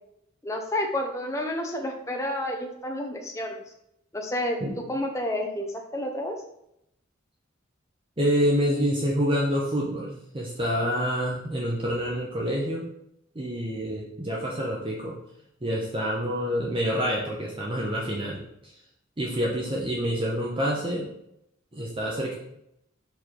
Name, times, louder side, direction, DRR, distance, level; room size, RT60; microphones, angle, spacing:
voice 1, 0.4-3.6 4.1-4.6 4.9-6.4, left 1 dB, 15° left, 1 dB, 0.7 m, -30 dB
voice 2, 8.2-12.8 13.3-15.2 15.6-18.7 19.2-21.1 21.7-22.4, equal, 25° right, -3 dB, 0.9 m, -27 dB
4.8 x 4.1 x 5.1 m, 0.78 s
head